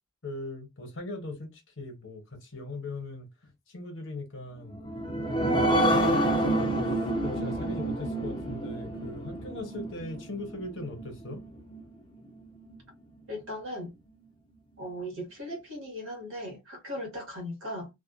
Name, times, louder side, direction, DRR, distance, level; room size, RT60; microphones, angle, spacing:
voice 1, 0.2-4.8 5.4-11.4, left 2 dB, 60° left, 1.0 m, -40 dB
sound 1, 4.7-11.8 12.2-12.3 12.7-12.8, right 1 dB, 20° left, 0.7 m, -28 dB
voice 2, 13.3-13.9 14.8-17.9, equal, 60° right, 1.3 m, -38 dB
2.5 x 2.3 x 2.4 m
head